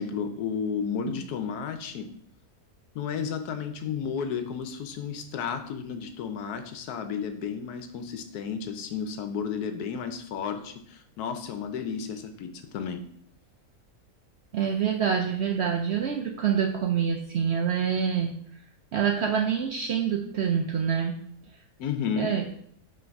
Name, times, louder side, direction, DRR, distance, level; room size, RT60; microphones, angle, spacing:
voice 1, 0.0-2.1 2.9-13.0 21.8-22.3, left 6 dB, 85° left, 8 dB, 1.2 m, -32 dB
voice 2, 14.5-18.3 18.9-21.2 22.2-22.4, right 7 dB, 65° right, 3 dB, 0.6 m, -26 dB
5.7 x 3.2 x 5.2 m, 0.66 s
omnidirectional pair, 1.6 m